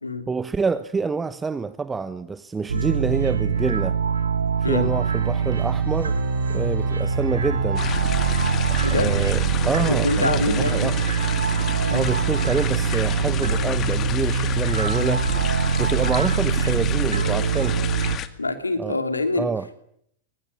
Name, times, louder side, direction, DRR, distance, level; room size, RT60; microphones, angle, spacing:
voice 1, 0.3-4.0 4.7-6.2 6.5-7.9 8.7-11.0 11.9-15.3 15.8-17.9 18.8-19.0 19.4-19.7, right 4 dB, 15° right, 1.0 m, -27 dB
sound 1, 2.7-18.2, right 6 dB, 70° right, 1.4 m, -23 dB
Organ, 4.8-13.9, right 6 dB, 40° right, 6.4 m, -38 dB
sound 2, 7.8-18.3, left 10 dB, 30° left, 2.1 m, -32 dB
voice 2, 8.8-9.1 9.9-10.9 11.8-12.0 15.0-15.2 18.4-19.5, left 3 dB, 80° left, 3.1 m, -25 dB
23.5 x 20.0 x 9.9 m
figure-of-eight pair, 90°, 0 cm